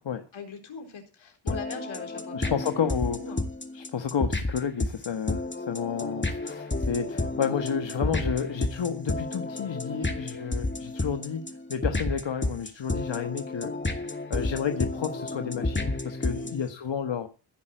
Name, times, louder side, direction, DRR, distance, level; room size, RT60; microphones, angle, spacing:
voice 1, 0.3-2.5 2.8-3.5 9.9-10.1 16.3-16.5, left 5 dB, 85° left, 3 dB, 4.2 m, -42 dB
sound 1, 1.5-16.7, left 2 dB, 25° left, 2.6 m, -31 dB
voice 2, 2.3-3.2 3.7-13.8 14.3-17.3, left 7 dB, 65° left, 8 dB, 1.4 m, -31 dB
16.0 x 5.6 x 9.0 m, 0.34 s
cardioid pair, 50°, 46 cm